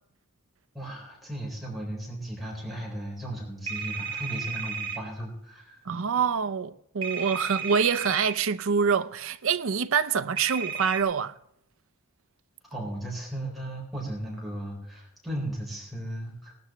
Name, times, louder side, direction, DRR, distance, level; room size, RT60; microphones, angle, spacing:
voice 1, 0.7-5.8 12.7-16.5, right 1 dB, ahead, 4.0 m, -36 dB
sound 1, 3.7-5.0 7.0-8.3 10.4-11.0, right 6 dB, 25° right, 1.7 m, -33 dB
voice 2, 5.9-11.3, right 6 dB, 65° right, 0.5 m, -26 dB
18.5 x 12.5 x 3.1 m
head